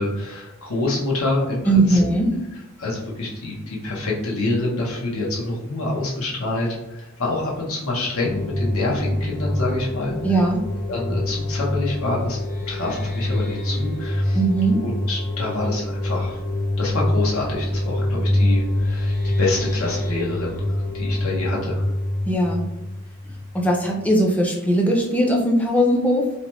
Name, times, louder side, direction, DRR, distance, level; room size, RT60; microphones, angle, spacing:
voice 1, 0.0-2.0 2.8-10.2 10.9-12.4 12.7-14.4 14.8-16.4 16.8-21.9, left 2 dB, 80° left, -3 dB, 0.8 m, -26 dB
voice 2, 1.7-2.3 10.2-10.6 14.3-14.8 22.3-22.6 23.5-26.3, right 1 dB, 5° left, -1 dB, 0.4 m, -19 dB
sound 1, 8.2-23.7, left 1 dB, 35° left, 0.8 m, -25 dB
2.9 x 2.2 x 2.9 m, 0.92 s
head